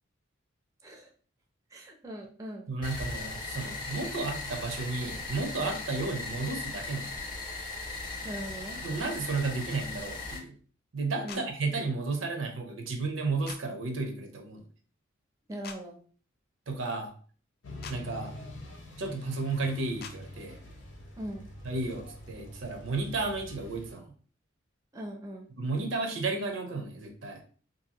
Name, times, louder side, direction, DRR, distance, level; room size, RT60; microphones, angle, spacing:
voice 1, 1.7-2.7 8.2-8.8 11.2-11.5 15.5-16.0 21.2-21.5 24.9-25.5, equal, 15° right, 0 dB, 0.5 m, -40 dB
voice 2, 2.7-7.1 8.8-10.6 10.9-14.7 16.7-17.1 17.9-18.3 19.0-20.6 21.6-24.1 25.6-27.4, right 3 dB, 80° right, 4 dB, 0.6 m, -33 dB
sound 1, 2.8-10.4, left 3 dB, 25° left, 0.7 m, -38 dB
sound 2, 11.3-11.4 13.4-13.6 15.6-15.8 17.8-18.0 20.0-20.1, left 6 dB, 50° left, 0.3 m, -42 dB
sound 3, 17.6-24.0, left 1 dB, 75° left, 0.7 m, -45 dB
2.7 x 2.6 x 2.8 m, 0.42 s
head